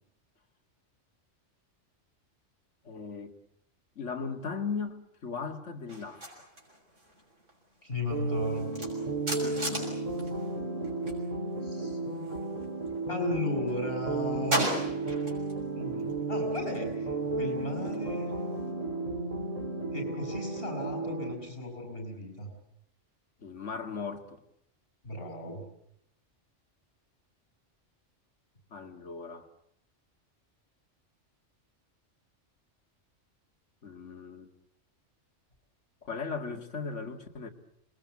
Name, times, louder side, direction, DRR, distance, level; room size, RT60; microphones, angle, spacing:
voice 1, 2.8-3.3 4.0-6.5 9.3-10.0 23.4-24.4 28.7-29.5 33.8-34.5 36.0-37.5, left 5 dB, 75° left, 5 dB, 2.2 m, -38 dB
sound 1, 5.9-11.2 11.5-13.1 13.5-15.6 15.9-18.7, right 1 dB, 90° right, 6.6 m, -38 dB
voice 2, 7.8-8.7 11.6-12.0 13.1-14.8 15.7-18.3 19.9-22.5 25.0-25.6, left 1 dB, 50° left, 4 dB, 7.9 m, -35 dB
sound 2, 8.1-21.3, right 3 dB, 30° right, 2.3 m, -33 dB
27.0 x 21.5 x 8.3 m, 0.74 s
omnidirectional pair, 1.2 m